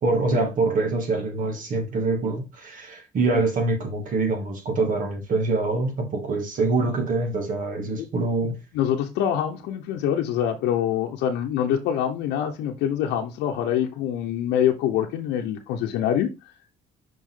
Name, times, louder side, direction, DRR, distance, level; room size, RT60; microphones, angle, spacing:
voice 1, 0.0-8.6, right 3 dB, 50° right, 2.4 m, -25 dB
voice 2, 8.7-16.3, left 10 dB, 90° left, 0.9 m, -25 dB
5.7 x 5.4 x 3.7 m
cardioid pair, 110°, 17 cm